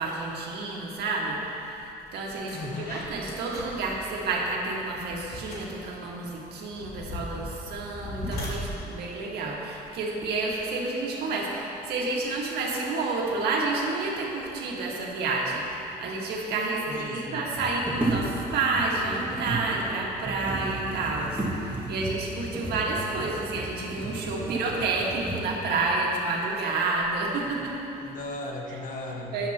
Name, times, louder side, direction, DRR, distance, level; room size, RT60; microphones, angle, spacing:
voice 1, 0.0-27.7 29.3-29.5, right 3 dB, 70° right, -2 dB, 1.9 m, -30 dB
sound 1, 1.7-1.9 2.3-10.5, left 1 dB, 70° left, 2.4 m, -39 dB
voice 2, 2.5-3.0 16.9-17.5 27.4-27.7 28.0-29.3, left 2 dB, 50° left, 1 dB, 1.4 m, -37 dB
sound 2, 15.9-16.0 16.1-16.2 17.3-25.7 26.4-26.5 26.9-27.6 27.9-28.5, right 1 dB, 10° right, 2.1 m, -34 dB
sound 3, 20.3-25.0, right 2 dB, 30° right, 0.6 m, -43 dB
13.0 x 10.0 x 3.0 m, 2.9 s
cardioid pair, 110°, 17 cm